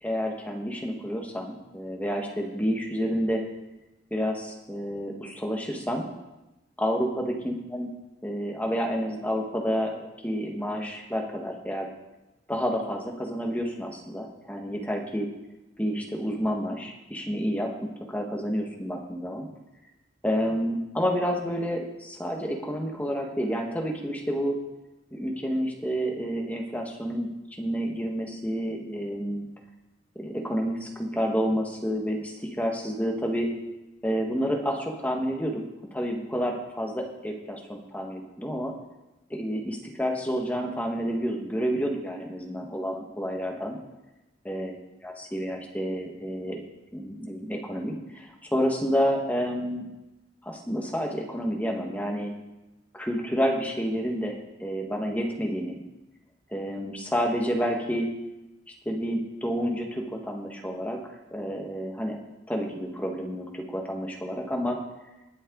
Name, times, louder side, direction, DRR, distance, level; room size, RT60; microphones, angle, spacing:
voice 1, 0.0-3.4 4.1-6.0 6.8-7.9 8.2-11.9 12.5-15.3 15.8-17.7 18.1-19.5 20.2-24.6 25.1-27.3 27.6-29.5 30.1-33.5 34.0-35.6 35.9-38.7 39.3-43.8 44.4-44.7 45.0-46.6 46.9-49.9 50.4-52.3 52.9-54.3 54.6-55.8 56.5-58.1 58.8-61.0 61.3-62.2 62.5-64.8, equal, 10° left, 1 dB, 1.7 m, -29 dB
19.5 x 7.8 x 4.0 m, 0.99 s
head